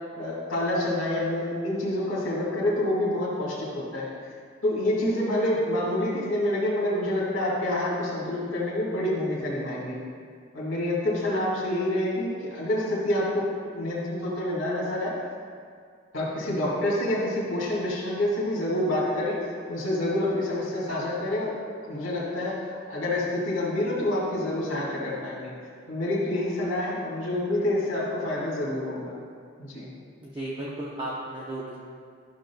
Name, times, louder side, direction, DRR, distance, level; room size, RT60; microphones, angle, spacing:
voice 1, 0.1-4.1 4.6-10.0 10.5-15.1 16.1-19.4 19.7-25.5 25.9-29.1 29.6-29.9, left 1 dB, 75° left, -6 dB, 1.7 m, -27 dB
voice 2, 30.2-31.8, right 1 dB, 25° right, -5 dB, 0.7 m, -34 dB
11.5 x 6.4 x 2.3 m, 2.1 s
head